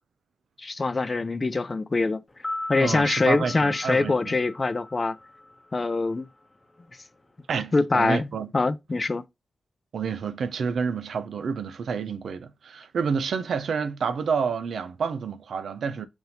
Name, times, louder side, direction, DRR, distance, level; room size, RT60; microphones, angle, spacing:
voice 1, 0.6-2.2 2.7-5.2 5.7-6.3 7.7-9.2, left 3 dB, 40° left, 0.5 m, -24 dB
sound 1, 2.3-6.5 6.7-6.8, left 2 dB, 25° left, 0.8 m, -39 dB
voice 2, 2.8-4.3 7.5-8.5 9.9-16.1, right 5 dB, 75° right, 0.4 m, -29 dB
5.5 x 2.6 x 2.8 m
supercardioid pair, 40°, 0 cm